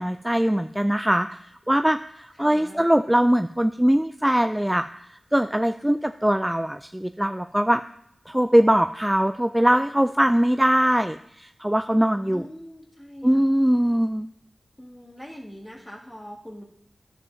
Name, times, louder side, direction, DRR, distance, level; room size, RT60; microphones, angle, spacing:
voice 1, 0.0-4.9 5.3-7.8 8.3-12.4 13.2-14.3, equal, 10° right, 8 dB, 0.3 m, -21 dB
voice 2, 2.4-2.9 12.3-13.5 14.8-16.6, equal, 20° left, -1 dB, 1.8 m, -42 dB
10.5 x 7.5 x 2.7 m, 0.72 s
cardioid pair, 45°, 0 cm